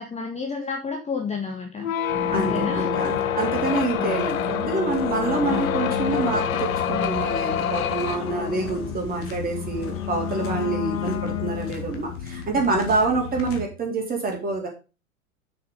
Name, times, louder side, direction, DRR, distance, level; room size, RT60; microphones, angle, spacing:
voice 1, 0.0-1.9 2.3-2.9 3.9-4.3 5.5-5.8, left 5 dB, 15° left, 2 dB, 1.6 m, -30 dB
sound 1, 1.8-12.1, left 9 dB, 75° left, 0.8 m, -27 dB
sound 2, 2.1-13.6, left 4 dB, 30° left, 2.0 m, -35 dB
voice 2, 2.3-14.7, right 3 dB, 20° right, 1 dB, 3.6 m, -27 dB
6.6 x 6.6 x 5.4 m, 0.31 s
figure-of-eight pair, 90°, 42 cm